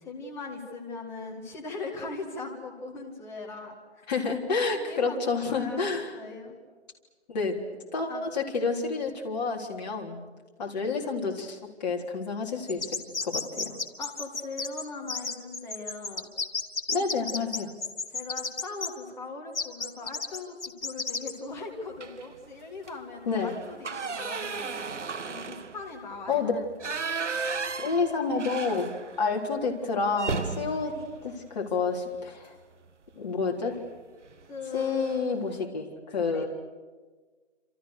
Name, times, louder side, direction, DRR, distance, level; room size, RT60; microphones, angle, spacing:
voice 1, 0.0-3.8 4.7-6.5 8.0-8.2 14.0-16.3 18.1-24.8 25.3-26.5 31.0-31.1 34.5-35.0 36.2-36.5, left 3 dB, 5° left, 1 dB, 2.0 m, -40 dB
voice 2, 4.1-6.1 7.3-7.6 7.9-10.2 10.6-13.8 16.9-17.7 23.3-23.6 26.3-26.6 27.8-28.9 29.2-32.6 33.2-33.8 34.7-36.5, left 4 dB, 35° left, 0 dB, 3.9 m, -29 dB
sound 1, 12.7-18.9 19.5-21.3, left 4 dB, 75° left, 3.1 m, -32 dB
sound 2, 22.0-22.4 22.8-22.9 23.3-29.3 29.6-29.7 30.1-32.3 33.6-33.9 34.3-34.4 34.7-35.3, right 5 dB, 80° right, 1.6 m, -35 dB
29.0 x 27.5 x 6.6 m, 1.4 s
hypercardioid pair, 160°, 35 cm